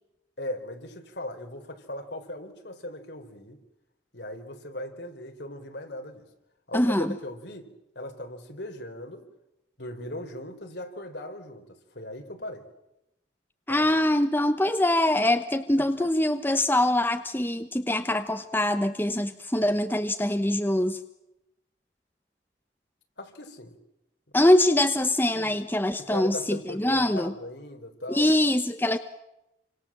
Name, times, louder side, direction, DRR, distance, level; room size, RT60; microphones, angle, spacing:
voice 1, 0.4-3.6 4.1-6.3 6.7-7.7 7.9-9.3 9.8-12.7 13.7-13.9 16.0-16.1 23.2-23.8 25.3-25.6 26.1-28.3, left 1 dB, 65° left, 5 dB, 4.3 m, -38 dB
voice 2, 6.7-7.1 13.7-21.0 24.3-27.3 28.1-29.0, left 1 dB, 10° left, 8 dB, 1.0 m, -23 dB
28.5 x 25.5 x 7.6 m, 0.90 s
head